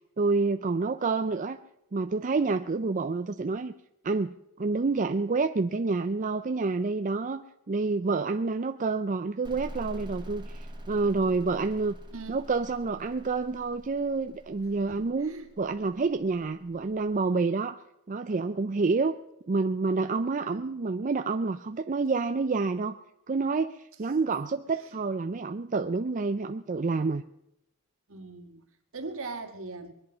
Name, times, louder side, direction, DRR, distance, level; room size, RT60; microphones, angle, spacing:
voice 1, 0.2-1.6 1.9-3.7 4.0-12.0 12.3-17.8 18.1-19.1 19.5-23.0 23.3-27.2, right 4 dB, 35° right, 8 dB, 0.5 m, -28 dB
sound 1, 9.4-17.0, equal, 20° right, 1.6 m, -45 dB
voice 2, 14.9-15.5 20.4-20.7 24.8-24.9 28.1-28.6 28.9-29.9, right 3 dB, 65° right, 5 dB, 2.0 m, -40 dB
22.0 x 10.5 x 5.5 m, 0.83 s
head